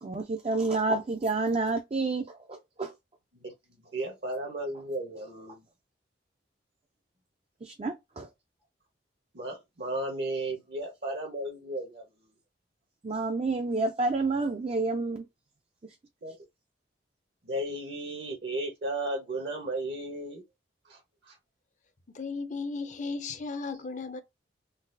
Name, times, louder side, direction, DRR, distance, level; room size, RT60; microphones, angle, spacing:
voice 1, 0.0-2.9 7.6-8.3 13.0-15.2, right 3 dB, 30° right, 0.4 m, -29 dB
voice 2, 3.9-5.6 9.3-12.0 16.2-16.3 17.4-20.4 20.9-21.0 21.3-21.4, right 1 dB, 65° right, 1.0 m, -34 dB
voice 3, 22.1-24.2, left 4 dB, 40° left, 0.5 m, -35 dB
3.9 x 2.3 x 2.6 m
head